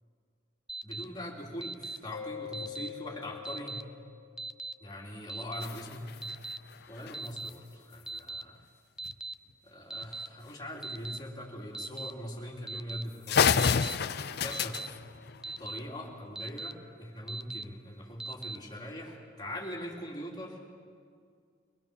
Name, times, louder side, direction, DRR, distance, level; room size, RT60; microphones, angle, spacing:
Alarm, 0.7-1.0 1.6-2.0 2.5-2.9 3.4-3.8 4.4-4.7 5.3-5.6 6.2-6.6 7.1-7.5 8.1-8.4 9.0-9.3 9.9-10.3 10.8-11.2 11.7-12.1 12.7-13.0 13.6-13.9 14.5-14.9 15.4-15.8 16.3-16.7 17.3-17.6 18.2-18.6, right 3 dB, 5° right, 0.5 m, -39 dB
voice 1, 0.8-3.9 4.8-6.1 6.9-8.6 9.6-13.7 14.2-15.0 15.6-20.8, equal, 20° left, -2 dB, 3.1 m, -42 dB
Mallet percussion, 2.1-4.7, left 9 dB, 90° left, 0.9 m, -44 dB
sound 1, 5.6-7.6 9.0-9.1 9.5-9.6 10.0-10.2 11.1-11.2 12.0-12.1 12.6-12.7 13.0-13.1 13.3-16.0, left 6 dB, 60° left, 0.6 m, -30 dB
23.5 x 19.5 x 6.9 m, 2.1 s
head